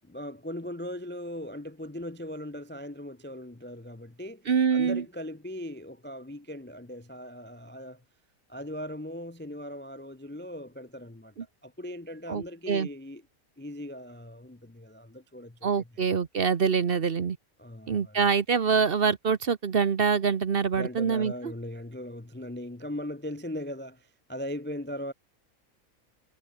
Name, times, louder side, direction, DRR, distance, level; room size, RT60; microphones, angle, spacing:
voice 1, 0.0-8.0 8.5-11.3 11.6-13.2 13.6-15.9 17.6-18.3 20.8-25.1, left 1 dB, 10° left, 0.5 m, -39 dB
voice 2, 4.5-5.0 12.3-12.9 15.6-17.4 17.9-21.3, right 6 dB, 45° right, 1.0 m, -25 dB
omnidirectional pair, 1.5 m